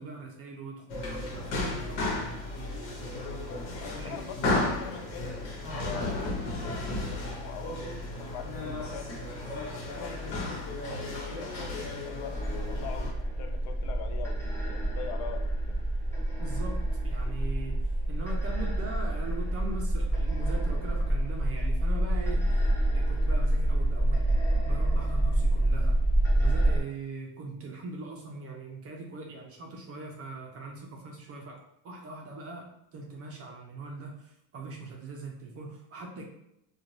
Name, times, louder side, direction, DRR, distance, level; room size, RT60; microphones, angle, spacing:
voice 1, 0.0-2.4 4.0-4.2 16.4-16.8 17.0-17.8 18.1-22.5 22.9-24.3 24.6-26.0 26.4-36.2, right 3 dB, 30° right, 0 dB, 0.4 m, -41 dB
sound 1, 0.9-13.1, left 2 dB, 90° left, 1.1 m, -34 dB
voice 2, 3.8-5.4 5.7-9.1 9.6-14.4 14.7-15.8, left 7 dB, 70° left, 6 dB, 0.6 m, -43 dB
sound 2, 12.3-26.8, right 1 dB, 5° left, 0.7 m, -27 dB
2.5 x 2.2 x 3.0 m, 0.81 s
supercardioid pair, 115°, 50 cm